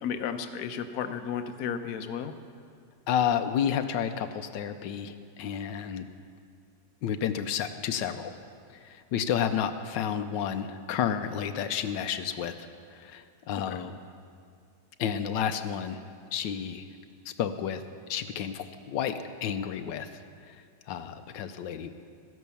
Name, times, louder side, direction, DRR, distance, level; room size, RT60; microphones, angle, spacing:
voice 1, 0.0-2.4 13.5-13.8, left 7 dB, 65° left, 7 dB, 1.2 m, -33 dB
voice 2, 3.1-6.1 7.0-8.4 8.7-14.0 15.0-16.0 16.3-16.8 17.3-17.8 18.1-20.1 20.5-21.9, left 8 dB, 90° left, 9 dB, 1.3 m, -31 dB
14.0 x 11.0 x 6.9 m, 2.2 s
omnidirectional pair, 1.9 m